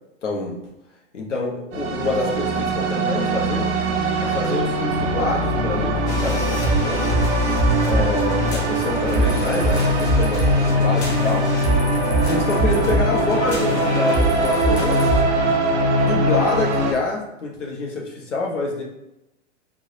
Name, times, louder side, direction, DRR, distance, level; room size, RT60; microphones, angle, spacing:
voice 1, 0.2-0.6 1.1-3.7 4.2-7.1 7.9-11.5 12.3-15.0 15.8-18.8, left 3 dB, 80° left, -1 dB, 1.1 m, -26 dB
sound 1, 1.7-16.9, right 1 dB, 65° right, 0.8 m, -22 dB
sound 2, 6.1-15.2, right 2 dB, 65° left, 1.2 m, -24 dB
3.6 x 2.7 x 3.2 m, 0.88 s
hypercardioid pair, 105°, 36 cm